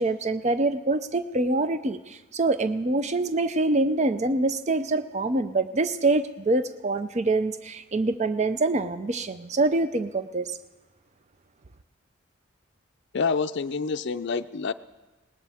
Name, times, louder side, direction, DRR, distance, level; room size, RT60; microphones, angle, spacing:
voice 1, 0.0-10.5, right 2 dB, 30° right, 11 dB, 0.5 m, -25 dB
voice 2, 13.1-14.7, left 5 dB, 55° left, 11 dB, 0.5 m, -27 dB
19.5 x 19.0 x 3.5 m, 1.2 s
head